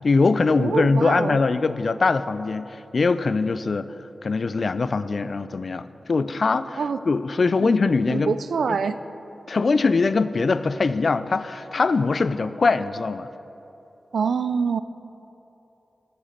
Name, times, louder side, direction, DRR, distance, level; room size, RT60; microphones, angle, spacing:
voice 1, 0.0-3.9 4.2-8.4 8.7-8.8 9.5-13.3, left 4 dB, 50° left, 14 dB, 0.4 m, -22 dB
voice 2, 0.6-1.4 6.8-7.0 7.6-7.7 8.1-9.0 14.1-14.8, right 5 dB, 90° right, 12 dB, 0.4 m, -25 dB
11.5 x 9.7 x 6.5 m, 3.0 s
wide cardioid pair, 115°, 0 cm